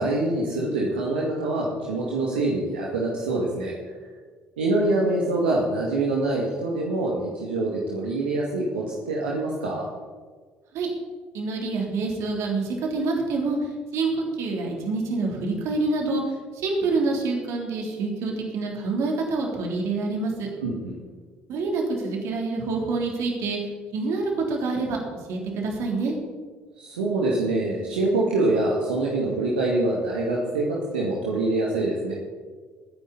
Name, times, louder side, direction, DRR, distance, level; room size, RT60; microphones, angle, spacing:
voice 1, 0.0-3.7 4.6-9.9 20.6-21.0 26.8-32.1, right 2 dB, 80° right, -4 dB, 2.3 m, -25 dB
voice 2, 11.3-14.1 14.4-16.2 16.6-20.5 21.5-23.6 23.9-25.0 25.3-26.1, right 3 dB, 60° right, 0 dB, 3.5 m, -26 dB
22.5 x 9.9 x 4.2 m, 1.5 s
figure-of-eight pair, 50°, 6 cm